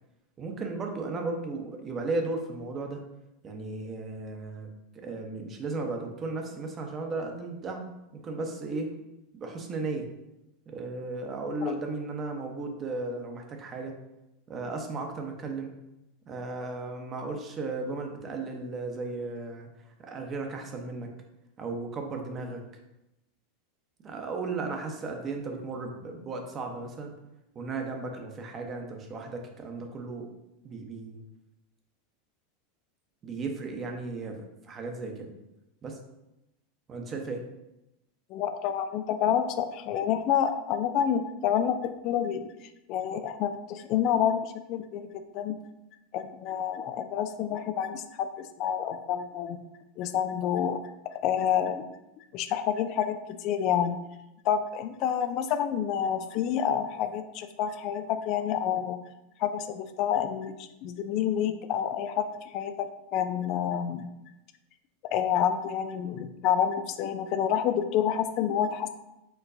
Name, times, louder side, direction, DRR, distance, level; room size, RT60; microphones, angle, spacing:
voice 1, 0.4-3.0 3.4-4.7 4.9-7.8 8.2-8.9 9.3-10.1 10.7-13.9 14.5-15.7 16.3-19.7 20.0-21.1 21.6-22.6 24.0-27.1 27.5-30.3 30.6-31.2 33.2-35.3 35.8-36.0 36.9-37.4, right 3 dB, 35° right, 3 dB, 0.9 m, -35 dB
voice 2, 38.3-42.5 42.9-45.1 45.3-45.5 46.1-49.6 50.0-50.8 51.2-51.8 52.3-54.0 54.4-59.0 59.4-62.2 62.5-62.9 63.1-64.1 65.1-68.9, left 9 dB, 50° left, 9 dB, 0.3 m, -28 dB
4.5 x 3.8 x 2.6 m, 0.92 s
hypercardioid pair, 90°, 0 cm